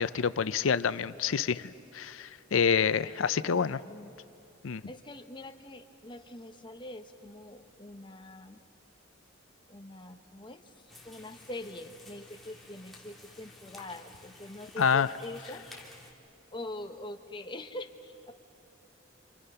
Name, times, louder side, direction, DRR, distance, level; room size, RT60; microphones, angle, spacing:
voice 1, 0.0-3.8 4.6-4.8 14.8-15.1, left 6 dB, 85° left, 15 dB, 0.5 m, -27 dB
voice 2, 3.4-4.1 4.9-8.6 9.7-15.7 16.5-18.3, left 1 dB, 25° left, 7 dB, 1.0 m, -44 dB
sound 1, 10.9-16.1, left 2 dB, ahead, 2.6 m, -52 dB
28.0 x 27.0 x 5.6 m, 2.7 s
head